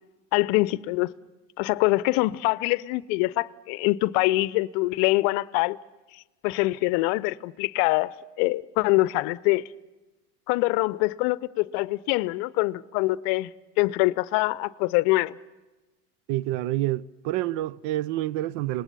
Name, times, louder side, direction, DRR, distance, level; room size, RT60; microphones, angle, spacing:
voice 1, 0.3-1.1 1.6-5.8 6.4-9.7 10.5-13.5 13.8-15.4, left 20 dB, 65° left, 0.7 m, -24 dB
voice 2, 16.3-18.8, right 15 dB, 60° right, 0.7 m, -28 dB
27.0 x 19.5 x 6.9 m
hypercardioid pair, 85°, 48 cm